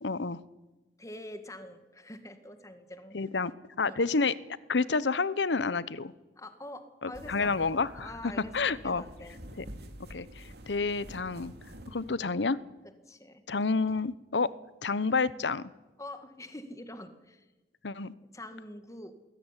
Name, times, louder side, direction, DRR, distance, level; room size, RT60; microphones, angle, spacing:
voice 1, 0.0-0.4 3.1-3.5 3.8-4.4 4.7-6.1 7.0-9.0 9.6-9.7 10.1-11.5 11.9-12.6 13.5-14.5 14.8-15.7 17.8-18.1, left 4 dB, 80° left, 18 dB, 0.9 m, -29 dB
voice 2, 1.0-3.2 3.8-4.0 6.4-7.5 7.9-9.4 12.8-13.4 13.9-14.0 16.0-17.5 18.3-19.1, left 1 dB, 20° left, 9 dB, 1.9 m, -45 dB
sound 1, 7.1-12.2, right 1 dB, 65° right, 2.5 m, -48 dB
21.0 x 17.0 x 9.9 m, 1.1 s
head